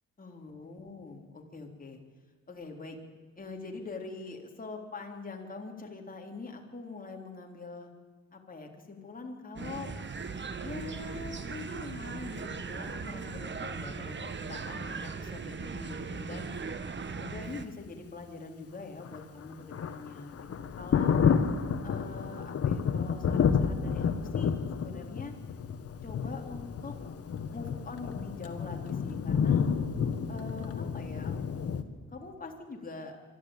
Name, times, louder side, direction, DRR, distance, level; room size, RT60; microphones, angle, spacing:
voice 1, 0.2-2.0 2.5-3.0 3.4-7.9 8.3-9.9 10.6-16.5 17.1-21.2 21.8-25.3 26.0-27.0 27.5-29.6 30.3-31.4 32.1-33.2, left 3 dB, 30° left, 2 dB, 3.7 m, -43 dB
sound 1, 9.6-17.7, right 5 dB, 40° right, 1.7 m, -38 dB
Thunder, 19.0-31.8, left 6 dB, 50° left, 1.6 m, -30 dB
24.5 x 13.0 x 8.9 m, 1.5 s
cardioid pair, 90°, 30 cm